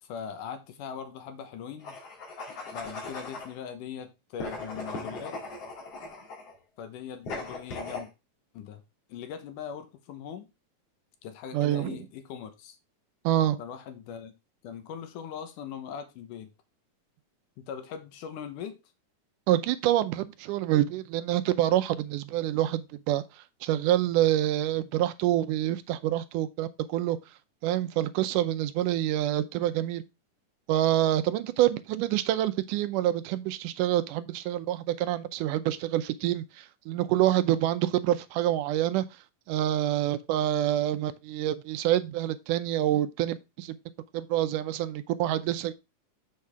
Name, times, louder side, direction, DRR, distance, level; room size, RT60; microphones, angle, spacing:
voice 1, 0.0-2.0 2.7-5.4 6.8-8.1 8.5-8.8 9.1-10.5 11.2-12.8 13.6-14.3 14.6-16.5 17.6-18.8, left 8 dB, 80° left, 2.5 m, -40 dB
sound 1, 1.8-3.5 4.4-6.5 7.2-8.1, left 3 dB, 50° left, 3.1 m, -38 dB
voice 2, 11.5-12.0 13.2-13.6 19.5-23.2 23.6-27.2 27.6-30.0 30.7-39.0 39.5-43.8 44.1-45.7, right 13 dB, 85° right, 2.2 m, -27 dB
7.8 x 6.5 x 3.5 m
omnidirectional pair, 3.7 m